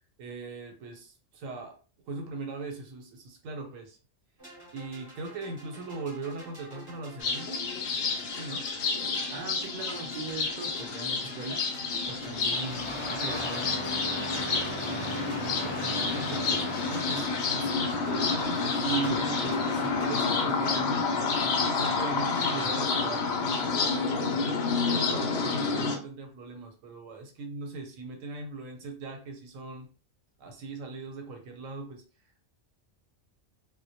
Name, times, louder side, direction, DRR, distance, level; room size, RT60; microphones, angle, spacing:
voice 1, 0.2-1.7 2.1-4.0 4.7-7.6 8.3-8.7 14.8-21.3 21.6-23.4 23.9-29.9 30.4-32.0, right 4 dB, 90° right, 1.0 m, -39 dB
sound 1, 4.4-20.5, right 1 dB, 20° right, 0.8 m, -48 dB
sound 2, 7.2-26.0, left 4 dB, 65° left, 0.8 m, -29 dB
voice 2, 9.3-11.6 12.0-13.8, right 3 dB, 50° right, 0.5 m, -40 dB
Engine starting, 12.0-20.2, left 1 dB, 45° left, 0.4 m, -37 dB
2.2 x 2.1 x 2.7 m
omnidirectional pair, 1.3 m